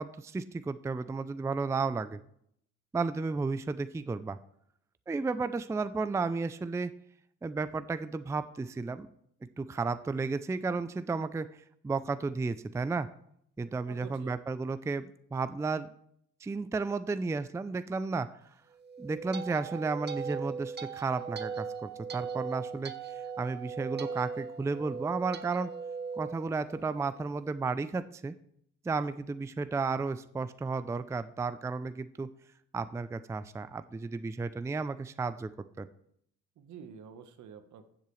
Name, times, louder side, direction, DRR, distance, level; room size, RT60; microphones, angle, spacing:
voice 1, 0.0-2.2 2.9-4.4 5.1-6.9 7.4-9.1 9.6-11.5 11.8-13.1 13.6-15.0 15.3-15.9 16.4-18.3 19.0-22.9 23.4-25.7 26.2-28.3 28.8-32.3 32.7-35.5 35.8-35.9, right 4 dB, 10° right, 13 dB, 0.4 m, -33 dB
voice 2, 13.9-14.3 36.6-37.9, right 7 dB, 70° right, 9 dB, 1.2 m, -48 dB
sound 1, 18.8-27.2, right 5 dB, 35° right, 0.9 m, -39 dB
15.0 x 7.6 x 3.2 m, 0.71 s
cardioid pair, 90°, 30 cm